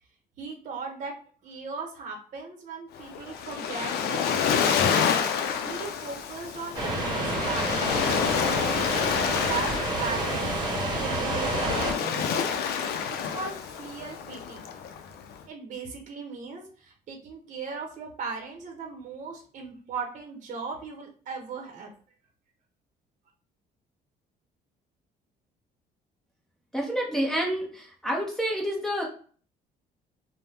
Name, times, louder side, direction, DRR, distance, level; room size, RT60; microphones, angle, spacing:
voice 1, 0.4-1.1 1.4-4.6 5.6-7.7 8.6-9.7 10.0-10.5 11.0-11.7 12.0-12.5 13.3-14.6 15.5-21.9, right 5 dB, 50° right, 2 dB, 0.8 m, -37 dB
Waves surf, 3.0-15.4, left 7 dB, 70° left, 0.5 m, -28 dB
sound 1, 6.7-11.9, right 1 dB, 25° right, 1.1 m, -29 dB
voice 2, 26.7-29.0, equal, 5° left, -1 dB, 0.8 m, -28 dB
2.7 x 2.1 x 3.3 m, 0.42 s
cardioid pair, 110°, 17 cm